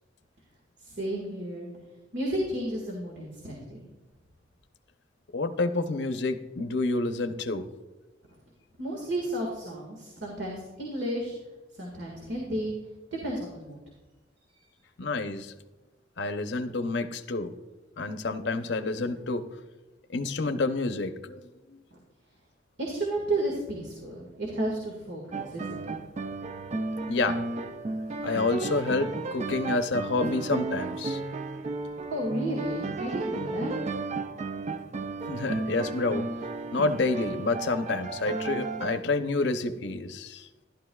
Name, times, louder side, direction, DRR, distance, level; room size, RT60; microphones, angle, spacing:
voice 1, 0.8-1.7 2.1-3.8 8.8-11.3 11.7-12.7 13.1-13.8 22.8-25.9 32.0-33.7, right 1 dB, 65° right, -2 dB, 1.8 m, -32 dB
voice 2, 5.3-7.7 15.0-15.5 16.2-17.5 18.0-19.5 20.1-21.4 21.7-21.8 27.1-27.4 28.2-31.2 35.3-36.3 36.7-40.5, left 3 dB, 65° left, 8 dB, 0.6 m, -28 dB
sound 1, 25.3-39.0, right 3 dB, 35° right, 0.4 m, -34 dB
12.0 x 11.5 x 2.3 m, 1.1 s
head